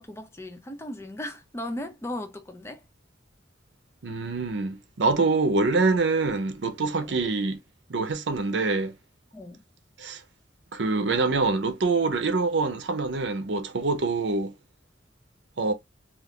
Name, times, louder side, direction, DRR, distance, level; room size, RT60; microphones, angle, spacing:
voice 1, 0.0-2.8 7.0-7.1 9.3-9.6, left 1 dB, 15° left, 0.5 m, -37 dB
voice 2, 4.0-7.6 7.9-8.9 10.0-10.2 10.7-14.5 15.6-15.7, right 3 dB, 70° right, 0.6 m, -25 dB
2.5 x 2.4 x 3.6 m
head